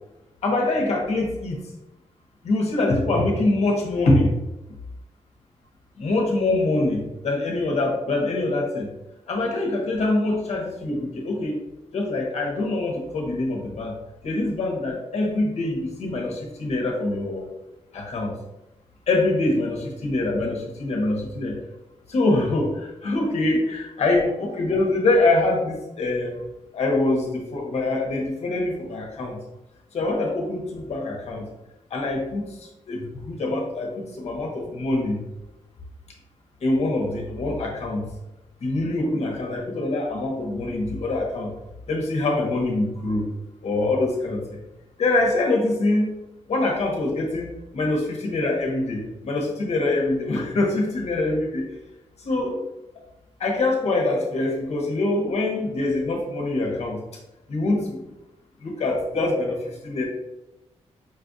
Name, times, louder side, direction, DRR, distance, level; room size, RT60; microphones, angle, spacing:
voice 1, 0.4-1.7 2.4-4.3 6.0-8.9 9.3-11.6 11.9-13.9 14.2-17.4 17.9-18.4 19.1-21.6 22.1-26.4 26.7-29.4 29.9-31.5 31.9-35.2 36.6-38.1 38.6-41.5 41.9-43.3 43.6-44.6 45.0-46.1 46.5-51.7 52.2-52.6 53.4-57.0 57.5-58.0 58.6-60.0, left 2 dB, 65° left, -1 dB, 1.0 m, -24 dB
5.3 x 2.4 x 2.6 m, 0.95 s
wide cardioid pair, 145°, 12 cm